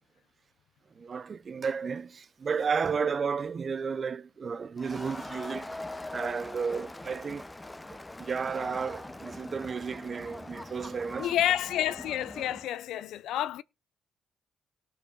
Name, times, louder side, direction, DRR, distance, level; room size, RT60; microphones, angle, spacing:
voice 1, 0.9-5.7 6.1-7.5 7.9-11.3, right 5 dB, 40° right, 0.6 m, -33 dB
Crowd, 4.8-12.7, left 2 dB, 15° left, 0.7 m, -42 dB
voice 2, 11.2-13.6, left 12 dB, 85° left, 0.5 m, -29 dB
18.5 x 6.7 x 3.9 m
cardioid pair, 90°, 0 cm